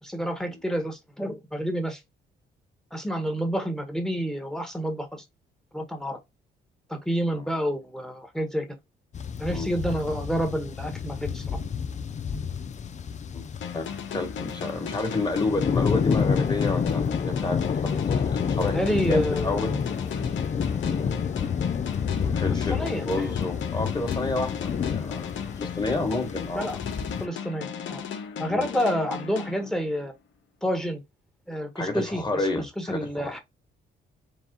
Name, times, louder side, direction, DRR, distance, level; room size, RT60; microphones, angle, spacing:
voice 1, 0.0-2.0 2.9-5.2 5.7-6.2 6.9-8.7 9.4-11.6 18.7-19.8 22.5-23.3 26.5-26.8 27.2-28.1 28.4-30.1 30.6-31.0 31.5-33.4, equal, 5° left, 1.3 m, -29 dB
sound 1, 9.1-27.3, left 6 dB, 35° left, 0.5 m, -29 dB
sound 2, 13.6-30.2, left 7 dB, 70° left, 0.9 m, -37 dB
voice 2, 14.1-19.7 22.1-26.7 28.5-28.7 31.8-33.4, left 2 dB, 20° left, 1.7 m, -30 dB
4.2 x 2.4 x 3.8 m
cardioid pair, 90°, 20 cm